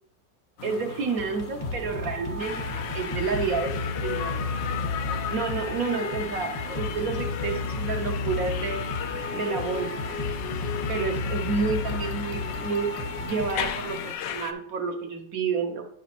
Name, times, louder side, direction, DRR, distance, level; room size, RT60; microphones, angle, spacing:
sound 1, 0.6-14.1, left 4 dB, 65° left, 0.9 m, -41 dB
voice 1, 0.6-3.8 4.0-4.3 5.3-8.8 9.3-10.1 10.9-12.9 13.2-15.9, right 5 dB, 65° right, 4 dB, 1.0 m, -30 dB
sound 2, 1.2-14.3, left 2 dB, 30° left, 0.8 m, -33 dB
sound 3, 2.4-14.5, left 9 dB, 80° left, 1.3 m, -35 dB
10.0 x 5.0 x 2.9 m, 0.66 s
omnidirectional pair, 2.0 m